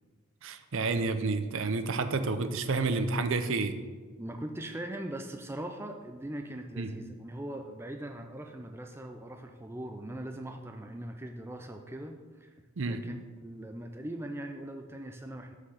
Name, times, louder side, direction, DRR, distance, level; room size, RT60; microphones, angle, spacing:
voice 1, 0.4-3.7 6.8-6.9 12.8-13.0, right 3 dB, 60° right, 9 dB, 0.6 m, -30 dB
voice 2, 4.2-12.5 12.8-15.6, right 1 dB, 10° right, 4 dB, 0.4 m, -41 dB
6.4 x 5.7 x 6.4 m, 1.4 s
head